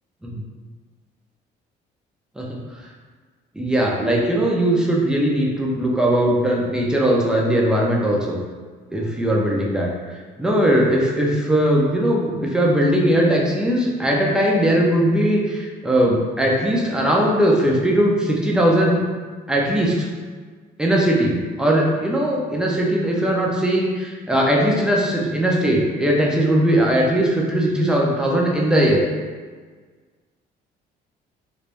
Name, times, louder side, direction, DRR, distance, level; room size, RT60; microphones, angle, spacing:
voice 1, 3.6-8.4 8.9-19.0 19.5-20.1 20.8-29.0, right 1 dB, 5° right, -2 dB, 0.6 m, -19 dB
3.2 x 3.2 x 2.5 m, 1.5 s
cardioid pair, 110°, 17 cm